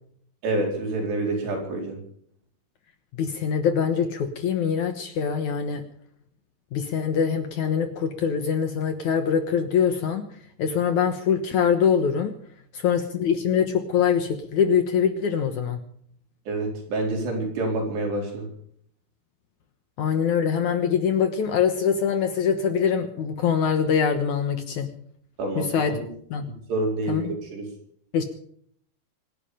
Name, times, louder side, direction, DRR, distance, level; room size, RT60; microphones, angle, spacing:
voice 1, 0.4-2.0 16.5-18.5 25.4-26.0 26.7-27.7, right 2 dB, 85° right, 1 dB, 6.5 m, -27 dB
voice 2, 3.1-5.8 6.7-10.3 10.6-12.3 12.7-15.8 20.0-24.9 25.6-25.9 26.3-26.5 27.1-27.2 28.1-28.2, left 7 dB, 65° left, 8 dB, 2.1 m, -23 dB
25.5 x 11.0 x 5.0 m, 0.63 s
omnidirectional pair, 4.7 m